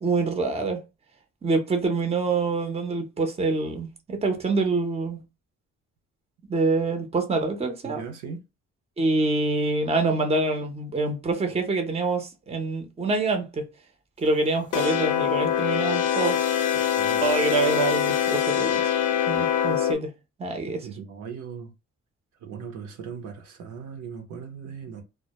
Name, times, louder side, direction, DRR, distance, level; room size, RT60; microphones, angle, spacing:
voice 1, 0.0-0.8 1.4-5.2 6.5-8.0 9.0-13.6 14.2-16.4 17.2-18.9 19.3-20.1 20.4-20.8, right 3 dB, 20° right, 0.6 m, -26 dB
voice 2, 7.8-8.4 16.7-17.2 20.8-21.7 22.4-25.0, right 6 dB, 75° right, 0.7 m, -38 dB
sound 1, 14.7-20.0, left 9 dB, 75° left, 0.6 m, -24 dB
2.1 x 2.0 x 2.8 m
cardioid pair, 90°, 30 cm